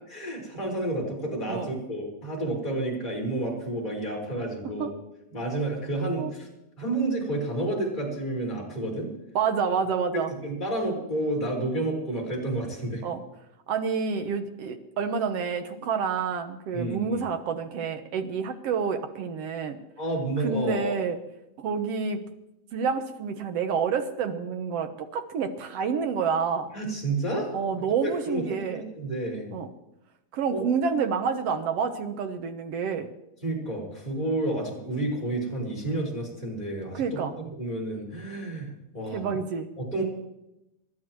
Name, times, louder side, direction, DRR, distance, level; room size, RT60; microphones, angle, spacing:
voice 1, 0.1-4.9 5.3-6.5 6.8-9.1 10.1-13.1 16.7-17.2 20.0-21.0 26.7-27.5 28.2-29.5 30.5-30.6 33.4-37.2 37.6-39.2 39.8-40.0, right 2 dB, 15° left, -3 dB, 5.2 m, -30 dB
voice 2, 9.3-10.3 13.0-13.2 13.7-19.8 20.4-21.2 21.6-22.2 22.7-26.7 27.5-28.8 29.5-29.7 30.3-33.1 36.9-37.3 39.1-39.7, right 6 dB, 60° right, 6 dB, 1.7 m, -28 dB
28.0 x 12.0 x 3.2 m, 0.89 s
omnidirectional pair, 3.9 m